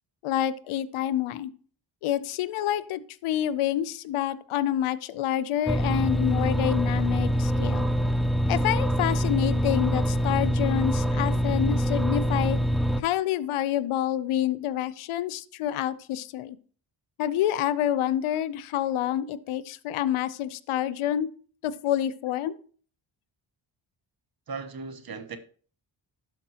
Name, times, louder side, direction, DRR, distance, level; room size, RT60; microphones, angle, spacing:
voice 1, 0.2-1.5 2.0-7.9 8.5-12.6 13.0-16.6 17.2-21.3 21.6-22.6, left 11 dB, 90° left, 0.6 m, -28 dB
sound 1, 5.7-13.0, equal, ahead, 0.3 m, -25 dB
voice 2, 24.5-25.4, right 4 dB, 50° right, 1.0 m, -37 dB
11.5 x 4.3 x 2.8 m
cardioid pair, 55°, 48 cm